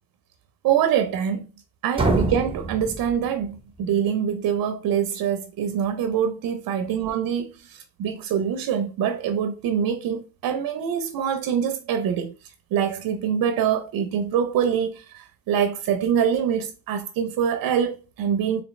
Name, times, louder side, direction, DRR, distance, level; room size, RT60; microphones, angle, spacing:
voice 1, 0.6-1.5 1.8-18.6, right 8 dB, 60° right, 0.6 m, -25 dB
sound 1, 1.9-3.8, right 3 dB, 15° right, 0.8 m, -26 dB
4.0 x 2.9 x 3.1 m
cardioid pair, 90°, 37 cm